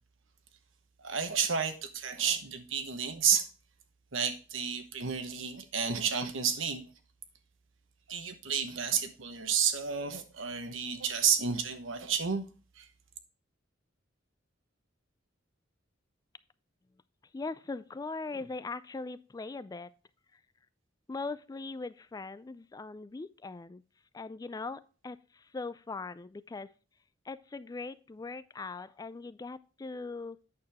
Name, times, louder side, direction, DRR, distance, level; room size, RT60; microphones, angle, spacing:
voice 1, 1.0-3.5 4.1-6.8 8.1-12.4 12.8-12.9, right 7 dB, 85° right, 1.1 m, -31 dB
voice 2, 17.3-19.9 20.3-20.4 21.1-23.8 24.1-26.7 27.3-30.4, left 3 dB, 20° left, 0.3 m, -40 dB
8.6 x 6.7 x 3.4 m
head